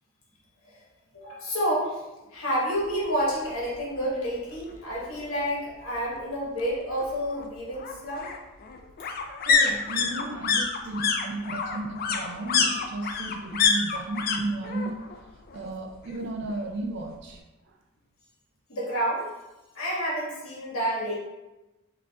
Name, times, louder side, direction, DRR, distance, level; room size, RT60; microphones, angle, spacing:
voice 1, 1.1-2.0 2.3-8.3 18.7-19.3 19.7-21.1, equal, 75° left, -5 dB, 1.2 m, -29 dB
sound 1, 3.5-3.6 4.0-4.1 4.3-5.3 6.6-14.4 14.6-15.2 15.5-16.5 16.8-16.9, left 5 dB, 45° left, 0.3 m, -27 dB
voice 2, 9.5-15.0 15.5-17.4, right 2 dB, 55° right, 3 dB, 0.3 m, -34 dB
4.8 x 2.4 x 2.2 m, 1.0 s
head